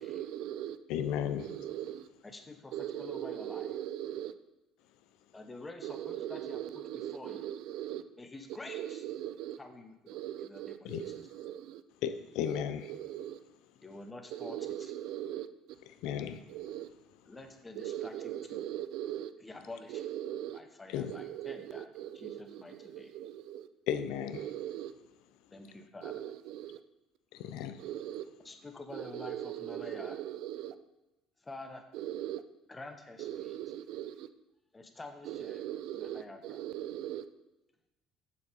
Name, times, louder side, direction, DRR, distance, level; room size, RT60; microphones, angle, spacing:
voice 1, 0.0-0.8 1.4-2.1 2.7-4.3 5.8-8.0 8.7-9.6 10.1-11.8 12.5-13.4 14.3-15.5 16.5-16.9 17.7-19.3 19.9-20.6 21.1-23.7 24.3-24.9 26.0-26.8 27.8-28.3 28.9-30.7 31.9-32.4 33.2-34.3 35.2-37.2, right 12 dB, 75° right, 0.5 m, -40 dB
voice 2, 0.9-1.4 10.8-11.0 12.0-12.8 16.0-16.4 20.9-21.1 23.9-24.4 27.3-27.8, left 9 dB, 80° left, 0.6 m, -34 dB
voice 3, 2.2-3.8 5.3-6.8 7.1-7.4 8.2-9.0 9.6-11.1 13.8-14.9 17.3-18.7 19.4-20.0 20.5-21.9 22.1-23.1 25.5-26.2 28.4-30.2 31.4-31.9 32.7-33.6 34.7-35.6 35.9-36.6, left 2 dB, 20° left, 1.2 m, -48 dB
7.2 x 6.9 x 5.4 m
supercardioid pair, 95°, 0 cm